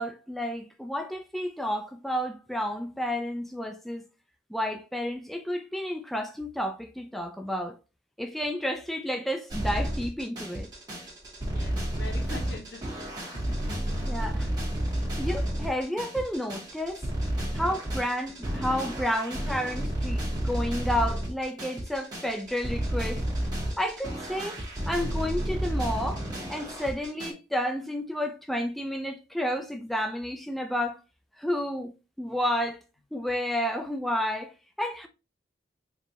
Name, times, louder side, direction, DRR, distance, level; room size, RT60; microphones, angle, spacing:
voice 1, 0.0-4.0 4.5-7.8 8.2-10.7 14.1-14.5 15.2-17.0 17.5-23.2 23.8-24.6 24.9-26.2 26.5-31.0 31.4-31.9 32.2-32.8 33.1-34.5 34.8-35.1, equal, ahead, 0.3 m, -31 dB
sound 1, 9.5-27.3, right 1 dB, 25° right, 1.9 m, -31 dB
voice 2, 11.4-13.6, left 2 dB, 70° left, 1.2 m, -43 dB
4.3 x 3.0 x 2.8 m
head